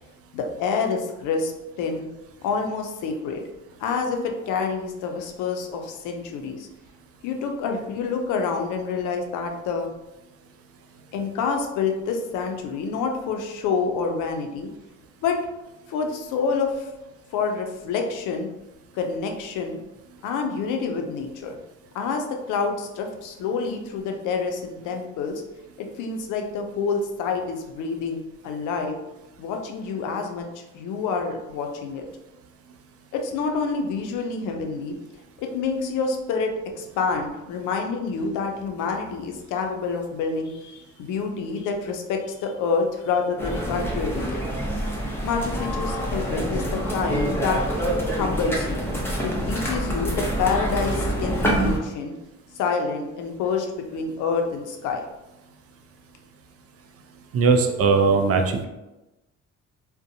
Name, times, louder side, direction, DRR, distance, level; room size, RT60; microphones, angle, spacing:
voice 1, 0.3-1.5 1.8-2.1 2.4-3.4 3.8-6.7 7.2-9.9 11.1-14.7 15.2-15.4 15.9-16.9 17.3-18.5 18.9-19.8 20.2-21.6 21.9-25.4 25.8-29.0 29.4-30.5 30.7-32.0 33.1-35.0 35.4-44.4 45.2-47.6 48.1-48.8 49.2-52.1 52.6-55.0, left 5 dB, 90° left, 3 dB, 0.5 m, -27 dB
sound 1, 43.4-51.8, right 1 dB, 10° left, 0.7 m, -26 dB
voice 2, 57.3-58.7, right 4 dB, 50° right, 4 dB, 0.4 m, -19 dB
2.6 x 2.1 x 2.5 m, 1.0 s
cardioid pair, 90°, 30 cm